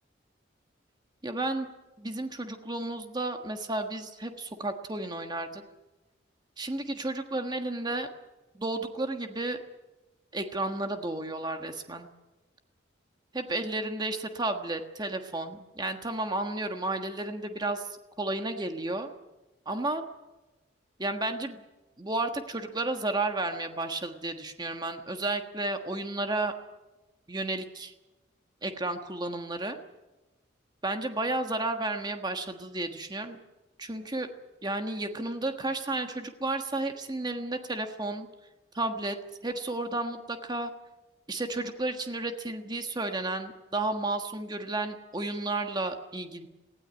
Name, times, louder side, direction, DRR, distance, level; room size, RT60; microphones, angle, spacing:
voice 1, 1.2-1.7 2.0-5.6 6.6-8.1 8.6-9.6 10.3-12.1 13.3-17.9 18.2-19.1 19.7-20.0 21.0-21.6 22.0-26.5 27.3-27.9 28.6-29.8 30.8-33.4 33.8-34.3 34.6-38.3 38.7-39.1 39.4-40.7 41.3-46.5, right 2 dB, 20° right, 6 dB, 1.4 m, -32 dB
19.0 x 16.5 x 9.7 m, 1.1 s
head